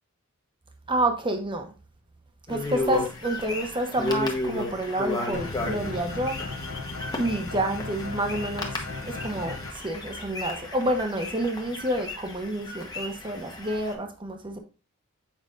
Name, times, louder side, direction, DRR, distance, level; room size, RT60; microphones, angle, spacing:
voice 1, 0.9-1.7 2.5-6.4 7.2-14.6, right 1 dB, 25° right, 0.9 m, -29 dB
sound 1, 2.5-13.9, left 2 dB, 20° left, 1.1 m, -34 dB
sound 2, 5.3-9.7, left 3 dB, 70° left, 1.0 m, -36 dB
7.5 x 5.2 x 2.5 m
head